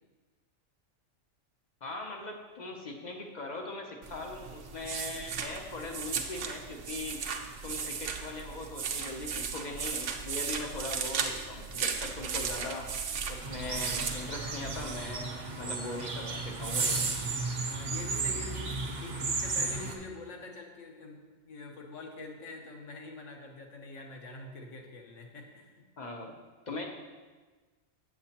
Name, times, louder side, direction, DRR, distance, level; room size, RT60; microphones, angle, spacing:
voice 1, 1.8-7.2 7.6-12.9 13.3-17.0 26.0-26.3 26.7-26.8, left 2 dB, 45° left, 1 dB, 0.6 m, -40 dB
sound 1, 4.0-15.0, right 6 dB, 70° right, 0.9 m, -36 dB
sound 2, 13.4-19.9, right 3 dB, 45° right, 0.6 m, -34 dB
voice 2, 17.7-21.2 21.4-25.8, left 3 dB, 75° left, 2 dB, 1.2 m, -45 dB
7.8 x 6.9 x 2.8 m, 1.4 s
omnidirectional pair, 1.3 m